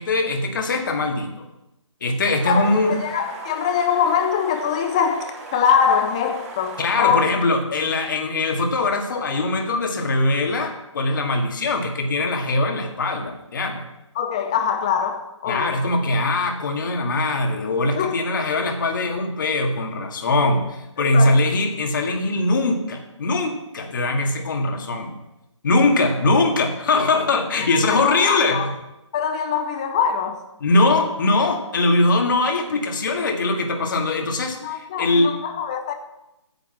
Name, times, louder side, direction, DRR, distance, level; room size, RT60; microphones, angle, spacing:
voice 1, 0.0-1.5 2.0-2.9 6.8-13.9 15.5-25.2 25.6-28.7 30.6-35.3, left 2 dB, 40° left, 1.9 m, -21 dB
sound 1, 2.3-7.3, right 3 dB, 30° right, 2.2 m, -39 dB
voice 2, 2.5-7.2 14.2-15.7 18.0-18.2 21.0-21.4 27.7-28.7 29.1-30.4 34.6-35.9, left 7 dB, 10° left, 0.5 m, -23 dB
9.6 x 8.6 x 7.8 m
hypercardioid pair, 170°, 16 cm